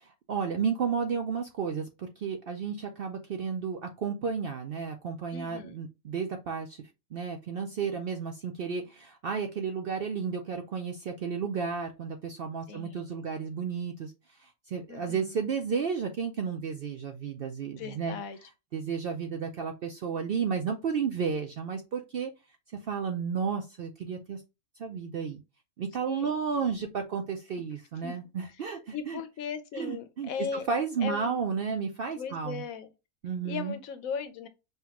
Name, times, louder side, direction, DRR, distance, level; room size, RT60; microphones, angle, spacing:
voice 1, 0.0-6.8 7.1-14.1 14.4-18.2 18.7-22.3 22.8-24.4 24.8-25.4 25.8-29.2 29.7-32.6 33.2-33.8, right 6 dB, 65° right, 0.5 m, -32 dB
voice 2, 5.3-5.8 12.7-13.2 14.9-15.4 17.7-18.4 26.0-26.3 28.0-28.2 28.9-30.7 31.0-31.4 32.1-32.9 33.4-34.5, left 6 dB, 80° left, 1.1 m, -37 dB
5.6 x 2.3 x 2.9 m
omnidirectional pair, 1.5 m